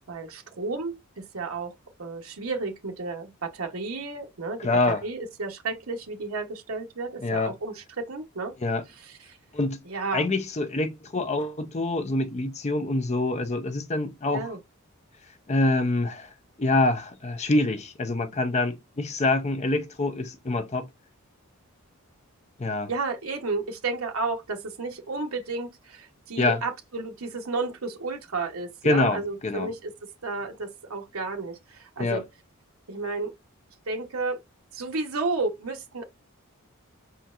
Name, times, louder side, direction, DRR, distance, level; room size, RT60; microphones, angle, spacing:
voice 1, 0.1-1.7 2.0-4.6 4.9-8.6 9.0-9.4 9.8-10.3 14.3-14.6 22.9-29.9 30.2-32.2 32.9-33.3 33.9-34.4 34.7-36.1, right 3 dB, 75° right, 1.0 m, -32 dB
voice 2, 4.6-5.0 7.2-7.5 8.6-8.8 9.5-9.8 10.1-14.5 15.5-16.3 16.6-20.9 22.6-22.9 26.4-26.6 28.8-29.7 32.0-32.2, left 2 dB, 30° left, 0.6 m, -25 dB
5.0 x 4.3 x 2.4 m
head